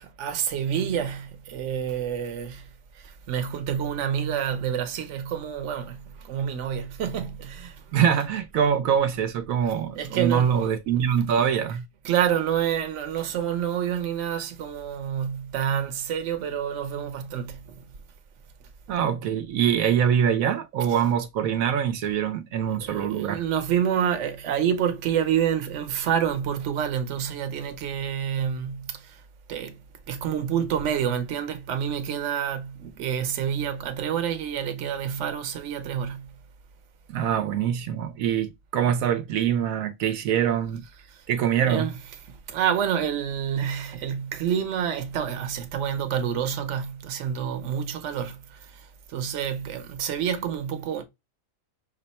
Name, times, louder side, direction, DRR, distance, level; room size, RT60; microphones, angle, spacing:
voice 1, 0.0-2.6 3.3-6.0 6.3-7.7 10.0-10.5 11.0-11.1 12.0-17.6 22.9-28.9 29.5-29.7 30.1-36.3 41.7-42.0 42.5-48.4 49.1-51.0, right 8 dB, 65° right, 1.0 m, -28 dB
voice 2, 7.9-11.8 18.9-23.4 37.1-40.8 41.3-41.9, right 8 dB, 90° right, 1.1 m, -24 dB
5.9 x 2.1 x 4.1 m
omnidirectional pair, 1.4 m